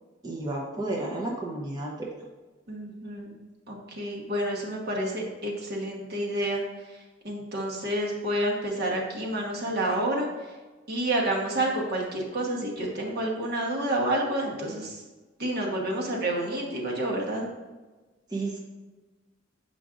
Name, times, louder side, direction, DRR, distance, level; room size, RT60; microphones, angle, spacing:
voice 1, 0.2-2.1 18.3-18.6, right 2 dB, 20° right, -3 dB, 0.8 m, -32 dB
voice 2, 2.7-3.3 3.7-6.6 7.2-10.3 10.9-15.0 15.4-17.5, right 1 dB, 55° right, -2 dB, 1.2 m, -29 dB
7.4 x 5.2 x 2.5 m, 1.2 s
head